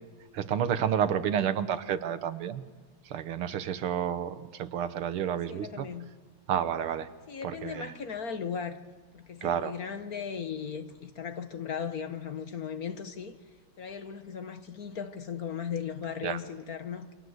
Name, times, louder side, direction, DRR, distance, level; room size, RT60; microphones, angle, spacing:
voice 1, 0.3-2.6 3.0-5.9 6.5-7.1 7.4-7.9 9.4-9.8 16.2-16.4, right 9 dB, 90° right, 2.1 m, -30 dB
voice 2, 5.2-6.1 7.3-8.8 9.1-13.3 13.8-17.2, left 7 dB, 50° left, 1.5 m, -37 dB
29.0 x 23.5 x 8.0 m
omnidirectional pair, 2.3 m